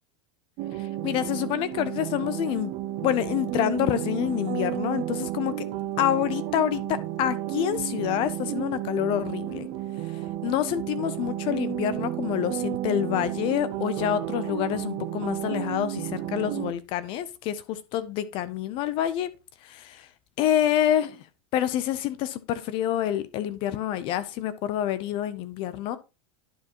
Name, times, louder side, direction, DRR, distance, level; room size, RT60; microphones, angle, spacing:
sound 1, 0.6-16.7, right 13 dB, 40° right, 0.6 m, -32 dB
voice 1, 0.8-2.7 3.0-5.5 6.0-9.7 10.4-19.3 19.6-20.1 20.4-21.2 21.5-26.0, left 11 dB, 35° left, 0.5 m, -27 dB
11.0 x 4.8 x 2.9 m
supercardioid pair, 160°, 14 cm